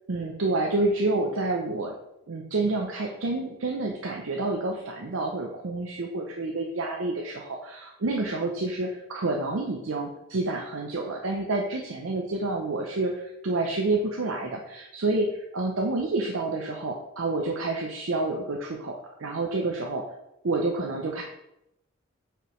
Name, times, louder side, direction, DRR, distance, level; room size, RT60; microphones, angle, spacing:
voice 1, 0.1-1.9 2.3-20.0 20.4-21.2, right 2 dB, 85° right, 1 dB, 0.7 m, -28 dB
7.9 x 4.9 x 3.1 m, 0.86 s
head